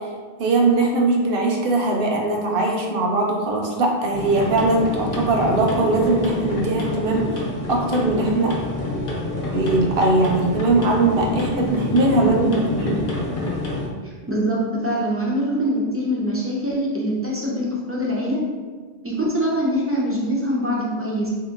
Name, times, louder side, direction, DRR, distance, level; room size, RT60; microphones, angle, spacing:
voice 1, 0.4-7.4 7.7-8.6 9.5-12.4 12.7-12.9, right 2 dB, 65° right, 0 dB, 0.7 m, -20 dB
sound 1, 4.1-13.9, left 2 dB, 60° left, 0.9 m, -27 dB
voice 2, 12.2-12.6 14.0-18.4 19.0-21.3, equal, 20° right, -5 dB, 0.3 m, -23 dB
3.5 x 2.8 x 2.4 m, 1.5 s
omnidirectional pair, 1.1 m